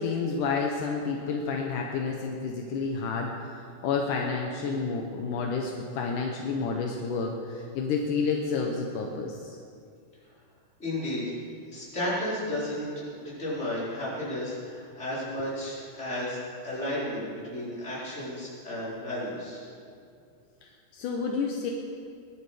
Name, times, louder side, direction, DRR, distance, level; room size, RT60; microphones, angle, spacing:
voice 1, 0.0-9.6 20.9-21.7, left 4 dB, 75° left, 1 dB, 1.9 m, -30 dB
voice 2, 10.8-11.4 11.7-16.4 16.6-19.6, left 1 dB, 15° left, -8 dB, 4.6 m, -33 dB
21.5 x 11.5 x 5.0 m, 2.3 s
omnidirectional pair, 5.0 m